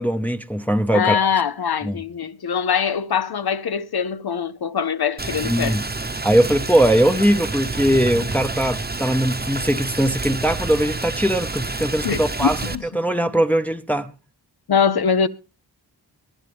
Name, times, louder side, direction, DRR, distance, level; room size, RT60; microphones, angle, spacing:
voice 1, 0.0-1.2 1.8-2.0 5.4-5.8 6.2-12.6 12.9-14.2, right 1 dB, 5° left, 0.8 m, -20 dB
voice 2, 0.9-5.8 12.0-12.8 14.7-15.3, left 7 dB, 65° left, 0.7 m, -22 dB
Rain, 5.2-12.8, right 3 dB, 25° right, 1.0 m, -28 dB
21.5 x 11.0 x 3.4 m
wide cardioid pair, 80°, 41 cm